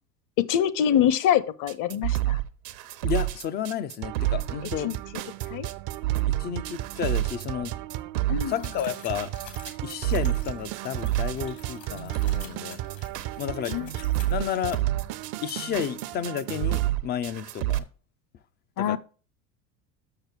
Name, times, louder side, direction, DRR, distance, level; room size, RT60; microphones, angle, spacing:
voice 1, 0.4-2.4 4.8-5.0 5.5-5.7 8.3-8.6 13.7-13.9 18.8-19.0, left 10 dB, 40° left, 0.8 m, -24 dB
sound 1, 1.7-17.8, right 15 dB, 80° right, 0.9 m, -28 dB
voice 2, 3.0-4.9 6.3-7.8 8.5-9.4 9.8-12.8 13.4-14.0 14.3-14.9 15.4-17.8 18.8-19.0, left 9 dB, 25° left, 0.3 m, -32 dB
sound 2, 4.0-16.9, right 15 dB, 45° right, 0.5 m, -36 dB
sound 3, 8.4-14.7, left 7 dB, 80° left, 2.8 m, -49 dB
6.7 x 6.3 x 4.6 m
hypercardioid pair, 80°, 48 cm